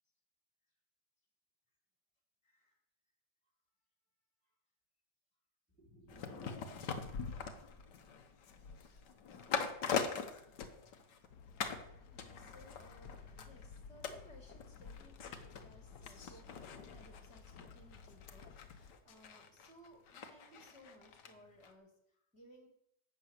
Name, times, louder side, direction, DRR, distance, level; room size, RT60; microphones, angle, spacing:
voice 1, 2.4-2.8 5.7-7.7 11.8-22.7, equal, 5° left, 2 dB, 2.0 m, -61 dB
sound 1, 6.1-11.3 11.6-11.9 12.2-21.3 21.6-21.7, left 6 dB, 85° left, 1.7 m, -43 dB
sound 2, 11.3-18.9, left 5 dB, 70° left, 1.4 m, -57 dB
12.0 x 6.2 x 8.1 m, 0.76 s
omnidirectional pair, 1.8 m